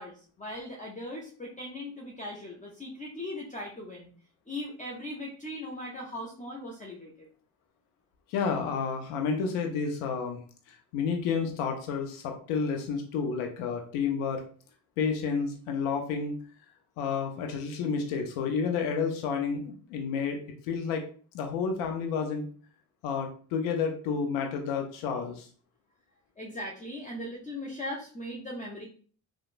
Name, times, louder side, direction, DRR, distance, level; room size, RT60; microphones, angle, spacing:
voice 1, 0.0-4.1 4.5-7.3 26.4-28.8, left 1 dB, 15° left, -2 dB, 0.5 m, -39 dB
voice 2, 8.3-10.4 10.7-14.4 15.0-16.4 17.0-20.4 20.6-21.0 21.3-22.5 23.0-25.5, left 5 dB, 75° left, 3 dB, 0.6 m, -30 dB
2.9 x 2.1 x 2.5 m, 0.43 s
hypercardioid pair, 50°, 49 cm